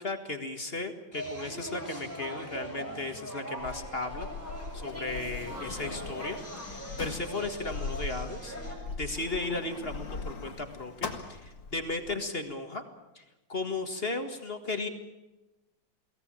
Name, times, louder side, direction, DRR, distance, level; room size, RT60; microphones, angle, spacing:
voice 1, 0.0-4.3 4.7-6.4 6.7-8.6 9.0-12.8 13.2-13.3 13.5-14.9, left 2 dB, 30° left, 7 dB, 1.8 m, -35 dB
sound 1, 1.1-8.7, equal, 5° left, 7.3 m, -41 dB
Sliding door, 3.6-12.2, left 4 dB, 65° left, 2.6 m, -40 dB
22.5 x 18.0 x 8.8 m, 1.0 s
omnidirectional pair, 2.2 m